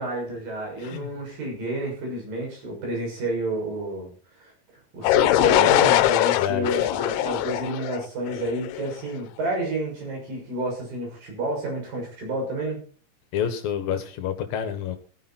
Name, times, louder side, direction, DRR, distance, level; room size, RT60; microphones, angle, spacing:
voice 1, 0.0-4.1 4.4-4.5 4.9-12.8, right 2 dB, 60° right, 0 dB, 8.0 m, -30 dB
sound 1, 5.0-8.9, left 14 dB, 90° left, 2.7 m, -21 dB
voice 2, 13.3-15.0, left 8 dB, 70° left, 9 dB, 2.9 m, -28 dB
16.0 x 10.5 x 4.3 m, 0.42 s
omnidirectional pair, 4.4 m